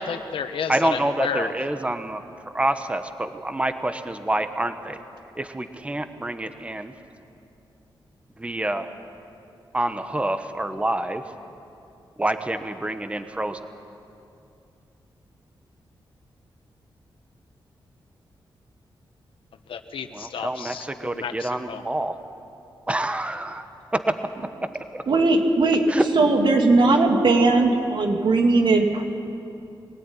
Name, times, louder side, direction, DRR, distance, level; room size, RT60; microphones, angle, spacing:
voice 1, 0.0-1.5 19.7-21.8, left 6 dB, 80° left, 8 dB, 1.4 m, -31 dB
voice 2, 0.7-2.2 2.5-5.0 5.4-6.9 8.4-8.9 9.7-11.2 12.2-13.6 20.1-22.1 22.9-23.6 23.9-24.0 24.9-25.0 25.9-26.1, right 1 dB, 15° right, 9 dB, 1.3 m, -27 dB
voice 3, 25.1-25.8 26.1-29.0, right 3 dB, 60° right, 3 dB, 3.0 m, -18 dB
23.0 x 17.5 x 10.0 m, 2.7 s
wide cardioid pair, 110°, 9 cm